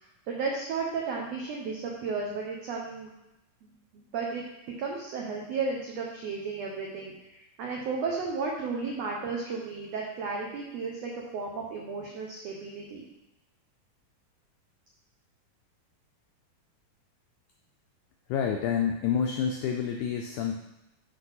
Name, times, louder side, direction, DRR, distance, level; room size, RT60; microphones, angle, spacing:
voice 1, 0.0-3.1 3.6-4.4 4.8-13.0, right 4 dB, 85° right, -1 dB, 1.4 m, -34 dB
voice 2, 18.3-20.6, left 7 dB, 90° left, 2 dB, 1.7 m, -28 dB
7.6 x 3.4 x 5.6 m, 0.93 s
omnidirectional pair, 4.0 m